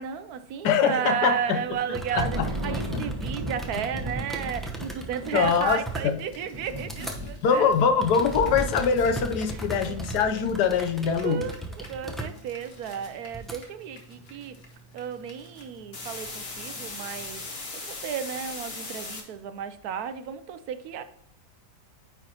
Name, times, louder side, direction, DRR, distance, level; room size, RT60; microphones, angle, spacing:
voice 1, 0.0-7.7 9.5-9.6 9.9-10.0 11.2-14.6 14.9-21.0, right 8 dB, 75° right, 11 dB, 1.1 m, -33 dB
voice 2, 0.6-1.6 1.9-2.5 2.9-3.1 5.3-6.2 7.4-11.5, left 6 dB, 80° left, 8 dB, 1.3 m, -23 dB
Thunder, 1.6-11.0, right 1 dB, 25° right, 1.2 m, -36 dB
sound 1, 1.9-7.2 7.6-13.6 14.1-14.7 15.9-17.4, right 2 dB, ahead, 0.5 m, -38 dB
sound 2, 5.0-5.1 5.3-10.8 11.1-19.2, left 3 dB, 40° left, 1.5 m, -41 dB
9.4 x 4.5 x 2.9 m, 0.69 s
omnidirectional pair, 1.7 m